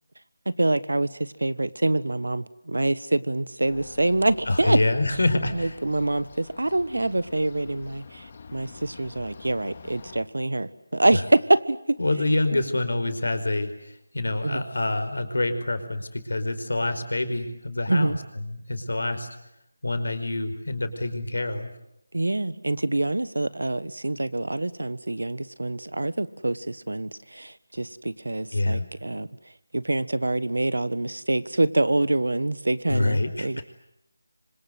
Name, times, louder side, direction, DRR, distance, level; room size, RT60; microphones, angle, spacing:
voice 1, 0.4-4.8 5.5-12.0 12.5-12.6 14.4-14.6 17.9-18.2 22.1-33.6, right 2 dB, 85° right, 16 dB, 1.4 m, -25 dB
sound 1, 3.6-10.2, left 5 dB, 40° left, 2.9 m, -46 dB
voice 2, 4.5-5.7 12.0-19.3 19.8-21.7 28.5-28.9 32.9-33.6, left 2 dB, 75° left, 8 dB, 5.0 m, -26 dB
27.0 x 25.5 x 8.0 m, 0.79 s
figure-of-eight pair, 165°, 0 cm